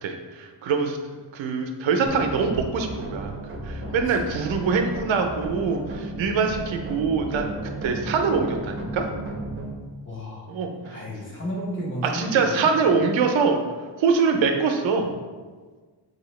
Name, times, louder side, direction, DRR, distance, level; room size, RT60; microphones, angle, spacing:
voice 1, 0.0-1.0 1.3-3.3 3.6-7.5 7.8-9.0 10.5-11.0 12.0-13.6 14.0-15.1, right 5 dB, 85° right, 4 dB, 0.6 m, -24 dB
sound 1, 2.1-9.7, right 1 dB, 30° right, 0.6 m, -34 dB
voice 2, 3.8-4.2 10.0-10.5 10.8-12.9, equal, 25° left, -4 dB, 1.0 m, -33 dB
4.2 x 2.7 x 3.1 m, 1.4 s
wide cardioid pair, 120°, 45 cm